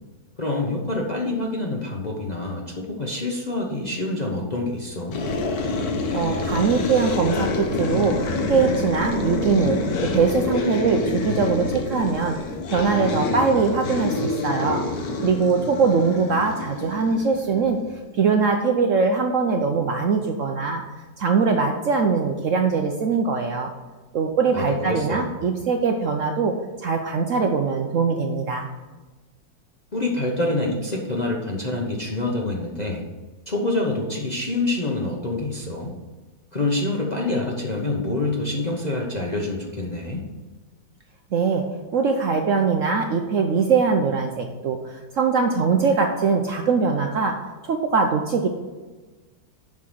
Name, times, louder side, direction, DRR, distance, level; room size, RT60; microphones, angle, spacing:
voice 1, 0.4-5.2 24.5-25.3 29.9-33.0 33.5-35.9 36.5-40.2, left 2 dB, 35° left, -1 dB, 0.8 m, -26 dB
sound 1, 5.1-18.0, left 3 dB, 60° left, 1.4 m, -27 dB
voice 2, 6.1-9.8 10.0-12.4 12.7-14.8 15.2-17.8 18.2-20.8 21.2-23.7 24.1-26.5 26.8-28.7 41.3-41.6 41.9-47.3 47.6-48.5, right 5 dB, 60° right, 3 dB, 0.9 m, -22 dB
7.2 x 5.7 x 6.1 m, 1.2 s
omnidirectional pair, 1.9 m